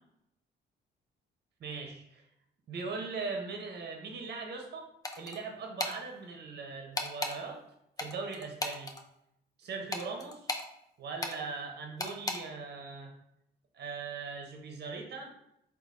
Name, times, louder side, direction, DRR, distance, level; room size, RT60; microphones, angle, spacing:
voice 1, 1.6-2.2 2.7-4.9 5.2-7.6 8.0-8.9 9.6-10.5 11.0-13.1 13.7-15.3, right 4 dB, 55° right, 3 dB, 1.0 m, -40 dB
sound 1, 5.0-5.4 5.8-6.0 7.0-7.4 8.0-9.0 9.9-10.7 11.2-11.4 12.0-12.4, left 2 dB, 20° left, 0.6 m, -35 dB
4.0 x 2.7 x 4.0 m, 0.79 s
cardioid pair, 90°, 20 cm